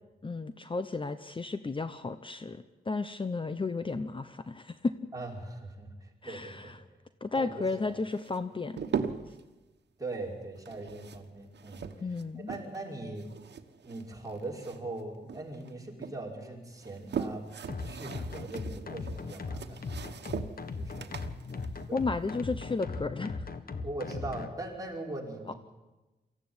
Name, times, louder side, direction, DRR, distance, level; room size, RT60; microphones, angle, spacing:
voice 1, 0.2-4.9 6.2-6.8 7.2-8.8 12.0-12.5 21.9-23.5 25.5-25.6, left 3 dB, 30° left, 11 dB, 0.8 m, -33 dB
voice 2, 5.1-6.8 7.4-7.6 7.9-8.0 10.0-11.9 12.5-13.3 13.8-17.5 17.8-20.0 20.7-21.2 21.9-22.0 23.8-25.5, right 2 dB, 20° right, -1 dB, 5.3 m, -40 dB
sound 1, 8.1-9.4 10.6-12.9 13.2-15.0 15.3-16.2 16.7-22.8, right 6 dB, 85° right, 1.3 m, -40 dB
sound 2, 17.7-24.5, left 3 dB, 60° left, 1.6 m, -38 dB
23.5 x 15.0 x 9.6 m, 1.1 s
wide cardioid pair, 95°, 17 cm